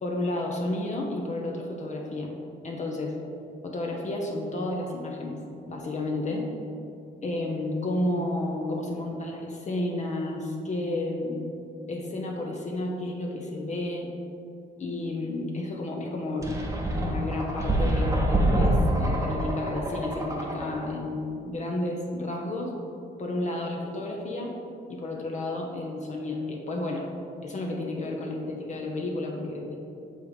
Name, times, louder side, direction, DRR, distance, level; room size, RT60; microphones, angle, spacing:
voice 1, 0.0-2.3 2.6-3.2 3.6-5.4 5.7-6.5 7.2-11.4 11.9-14.1 14.8-16.5 17.0-22.7 23.2-24.5 24.9-27.1 27.4-29.8, left 2 dB, 35° left, -1 dB, 0.9 m, -31 dB
sound 1, 16.4-21.0, right 1 dB, 15° right, 0.9 m, -26 dB
7.1 x 3.6 x 4.7 m, 2.6 s
cardioid pair, 90°, 20 cm